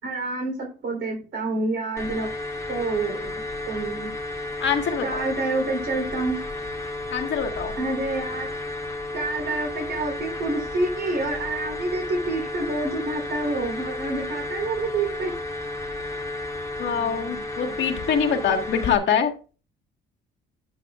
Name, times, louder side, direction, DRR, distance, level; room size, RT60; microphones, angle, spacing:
voice 1, 0.0-2.3 2.7-3.3 3.7-4.1 5.0-6.4 7.8-8.5 9.1-15.3, right 2 dB, 65° right, 1 dB, 3.5 m, -28 dB
sound 1, 2.0-19.0, left 2 dB, 15° left, 2.1 m, -33 dB
voice 2, 4.6-5.2 7.1-7.7 16.8-19.3, left 7 dB, 65° left, 3 dB, 1.6 m, -24 dB
10.5 x 8.2 x 2.4 m, 0.36 s
cardioid pair, 90°, 20 cm